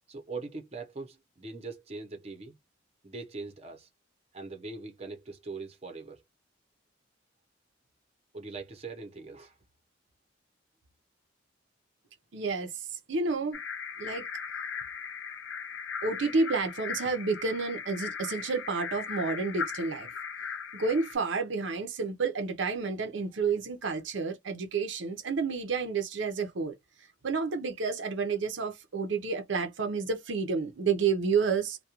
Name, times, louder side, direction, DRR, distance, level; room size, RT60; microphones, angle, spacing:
voice 1, 0.1-2.6 3.0-3.9 4.3-6.2 8.3-9.6, right 3 dB, 35° right, 0.7 m, -41 dB
voice 2, 12.3-13.6 14.0-14.3 16.0-20.1 20.7-26.8 27.2-31.8, right 4 dB, 75° right, 0.6 m, -30 dB
sound 1, 13.5-21.1, left 6 dB, 80° left, 0.6 m, -38 dB
2.3 x 2.2 x 2.8 m
head